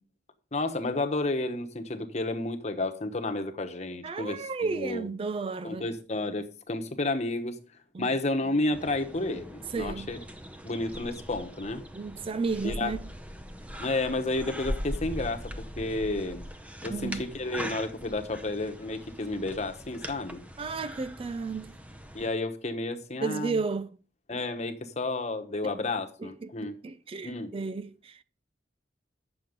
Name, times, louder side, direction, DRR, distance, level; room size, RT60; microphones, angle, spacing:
voice 1, 0.5-4.4 4.7-5.0 5.6-7.6 8.0-10.2 10.6-11.8 12.6-12.9 13.8-16.4 16.8-20.4 22.1-23.6 24.3-26.7 27.2-27.5, left 2 dB, 40° left, 1.2 m, -31 dB
voice 2, 4.0-5.9 7.9-8.2 9.7-10.2 11.9-13.1 16.9-17.3 20.6-21.8 23.2-24.0 26.2-28.2, right 4 dB, 30° right, 0.3 m, -33 dB
sound 1, 8.7-22.3, equal, 10° right, 0.7 m, -41 dB
9.6 x 6.8 x 5.2 m
head